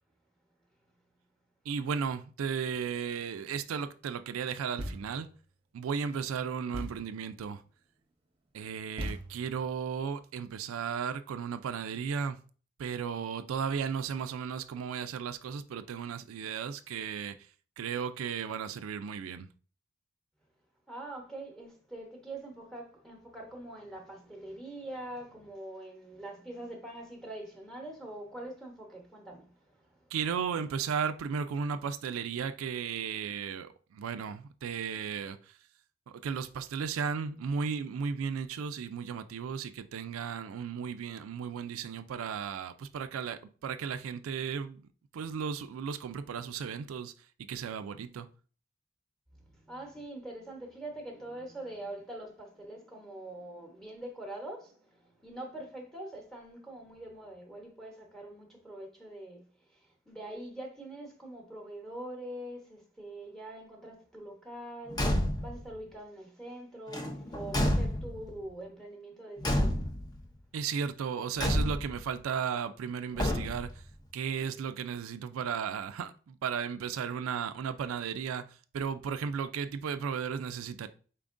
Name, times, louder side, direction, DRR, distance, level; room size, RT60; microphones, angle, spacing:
voice 1, 1.7-5.3 5.7-7.6 8.5-12.4 12.8-17.5 17.8-19.5 30.1-35.6 36.1-44.9 45.1-47.1 47.4-48.3 70.5-73.8 74.1-80.9, right 6 dB, 85° right, 0.3 m, -35 dB
Thump thud, 4.8-5.3 6.7-7.2 9.0-9.6, equal, 25° right, 0.8 m, -39 dB
voice 2, 20.9-30.1 49.4-65.1 65.4-69.8, right 1 dB, 5° left, 0.9 m, -44 dB
Car / Truck / Slam, 64.9-65.6 66.9-68.3 69.4-70.2 71.4-72.1 73.1-73.8, left 1 dB, 20° left, 0.5 m, -29 dB
4.5 x 3.5 x 2.5 m
head